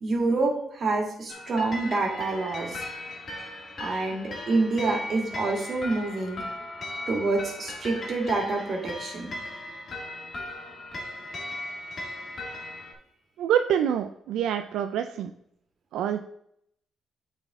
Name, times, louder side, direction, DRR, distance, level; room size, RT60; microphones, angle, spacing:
voice 1, 0.0-2.8 3.8-6.4 7.1-9.3, right 3 dB, 50° right, 1 dB, 2.0 m, -27 dB
sound 1, 1.3-12.9, left 1 dB, 45° left, 1.9 m, -38 dB
voice 2, 13.4-15.3 15.9-16.2, right 9 dB, 85° right, 7 dB, 0.3 m, -26 dB
8.9 x 4.1 x 3.6 m, 0.72 s
cardioid pair, 90°, 0 cm